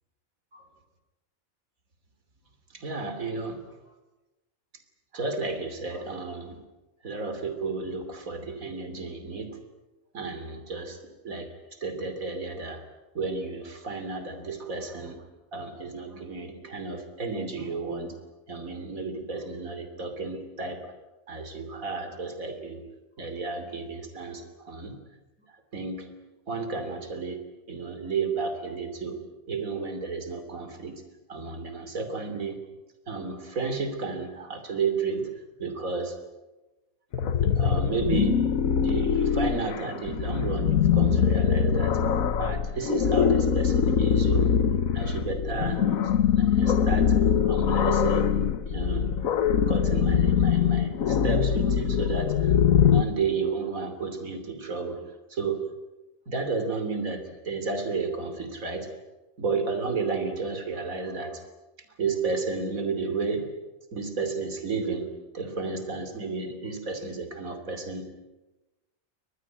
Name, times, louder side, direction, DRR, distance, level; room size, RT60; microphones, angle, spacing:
voice 1, 2.7-3.8 5.1-6.6 7.0-9.6 10.1-11.0 11.2-11.5 11.8-12.8 13.2-15.2 15.5-18.2 18.5-20.9 21.3-22.9 23.2-25.0 25.7-26.1 26.5-29.2 29.5-31.0 31.3-32.6 33.1-35.3 35.6-36.2 37.6-38.4 38.8-42.0 42.4-44.5 44.9-45.8 46.3-47.2 47.4-48.3 48.7-49.1 49.7-52.5 52.9-55.0 55.3-55.7 56.3-58.9 59.4-61.4 62.0-63.5 63.9-65.1 65.3-68.1, right 4 dB, 85° right, 8 dB, 3.5 m, -32 dB
sound 1, 37.1-53.0, left 7 dB, 85° left, 1.5 m, -23 dB
23.5 x 20.0 x 9.3 m, 1.1 s
omnidirectional pair, 1.4 m